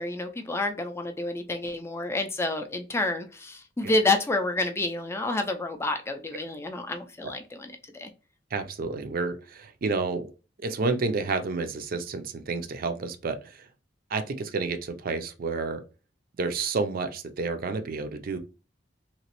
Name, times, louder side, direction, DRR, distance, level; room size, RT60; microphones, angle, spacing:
voice 1, 0.0-8.1, left 2 dB, 15° left, 0.4 m, -29 dB
voice 2, 8.5-10.3 10.6-13.7 14.1-15.8 16.4-18.4, right 4 dB, 50° right, 0.4 m, -30 dB
3.0 x 2.8 x 2.9 m
head